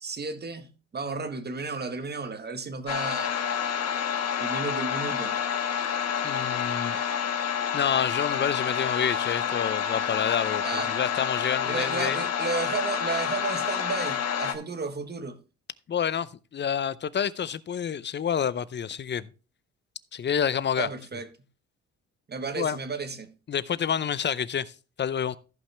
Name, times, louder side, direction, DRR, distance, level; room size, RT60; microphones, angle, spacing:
voice 1, 0.0-3.3 4.4-5.4 10.6-10.9 11.6-15.4 20.8-21.3 22.3-23.3, right 4 dB, 35° right, 1.3 m, -33 dB
sound 1, 2.9-14.5, left 8 dB, 55° left, 1.2 m, -28 dB
voice 2, 6.2-7.0 7.7-12.2 15.9-19.3 20.1-20.9 22.6-22.8 23.5-25.4, left 8 dB, 35° left, 0.6 m, -28 dB
14.5 x 5.5 x 3.4 m
cardioid pair, 90°, 30 cm